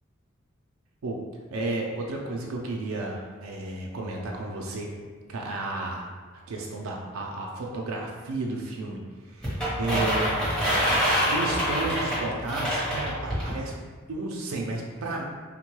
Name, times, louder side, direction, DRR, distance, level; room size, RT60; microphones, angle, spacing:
voice 1, 1.5-4.9 5.3-6.1 6.5-10.2 10.9-13.7 14.1-15.2, right 2 dB, 85° right, -1 dB, 0.4 m, -32 dB
sound 1, 9.4-13.5, equal, 5° left, 0.9 m, -26 dB
3.6 x 2.2 x 3.0 m, 1.5 s
head